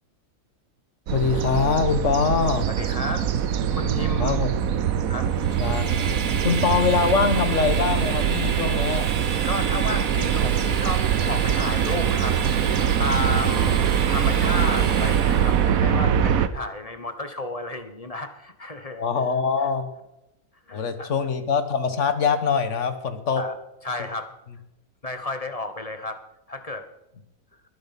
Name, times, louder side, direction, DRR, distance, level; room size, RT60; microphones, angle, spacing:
voice 1, 1.1-2.7 4.2-4.5 5.6-6.1 6.4-9.1 18.9-19.9 20.7-23.4, left 6 dB, 55° left, 10 dB, 1.6 m, -23 dB
sound 1, 1.1-16.5, right 8 dB, 70° right, 1.3 m, -23 dB
voice 2, 2.7-3.3 3.7-4.5 5.1-5.3 9.4-12.4 13.0-19.1 20.7-21.1 23.3-23.6 23.8-24.3 25.0-26.2 26.5-26.9, left 2 dB, 25° left, 8 dB, 1.2 m, -32 dB
Train, 5.3-15.8, right 6 dB, 40° right, 0.8 m, -32 dB
21.0 x 7.3 x 5.8 m, 0.87 s
omnidirectional pair, 1.6 m